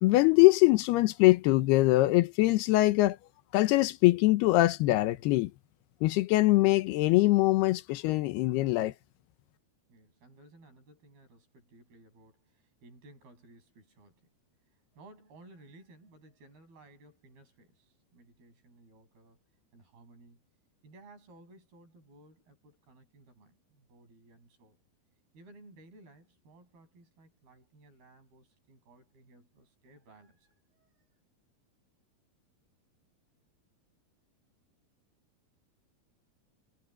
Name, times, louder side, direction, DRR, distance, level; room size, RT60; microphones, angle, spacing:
voice 1, 0.0-3.2 3.5-5.5 6.0-8.9, left 19 dB, 80° left, 2.8 m, -23 dB
voice 2, 9.9-14.3 14.9-19.4 19.7-20.4 20.8-24.8 25.3-30.9, right 2 dB, 70° right, 9.6 m, -57 dB
omnidirectional pair, 4.6 m